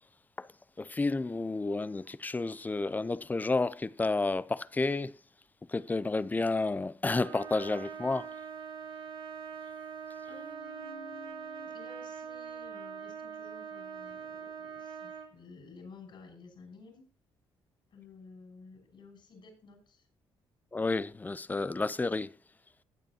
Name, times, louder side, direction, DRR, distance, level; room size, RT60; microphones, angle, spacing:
voice 1, 0.8-5.1 5.7-8.3 20.7-22.3, left 3 dB, 20° left, 0.5 m, -31 dB
Trumpet, 7.2-15.3, right 7 dB, 70° right, 3.1 m, -43 dB
voice 2, 10.3-17.1 17.9-20.1, left 3 dB, 60° left, 6.4 m, -52 dB
19.5 x 8.2 x 2.9 m
cardioid pair, 90°, 9 cm